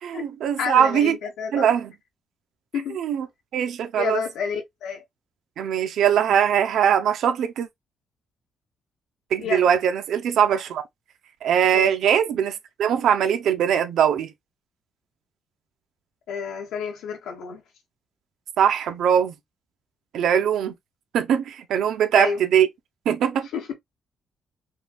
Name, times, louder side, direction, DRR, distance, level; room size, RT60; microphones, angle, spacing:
voice 1, 0.0-1.2 1.5-1.9 3.0-3.3 3.5-4.2 5.6-7.7 9.3-10.8 11.4-14.3 18.6-19.3 20.1-20.7 21.1-22.7 23.1-23.5, right 8 dB, 65° right, 0.7 m, -21 dB
voice 2, 0.6-1.7 2.7-3.0 3.9-5.0 9.4-9.7 11.7-11.9 16.3-17.6 22.1-22.4 23.5-23.7, left 6 dB, 80° left, 1.4 m, -29 dB
5.5 x 2.4 x 2.3 m
cardioid pair, 175°, 0 cm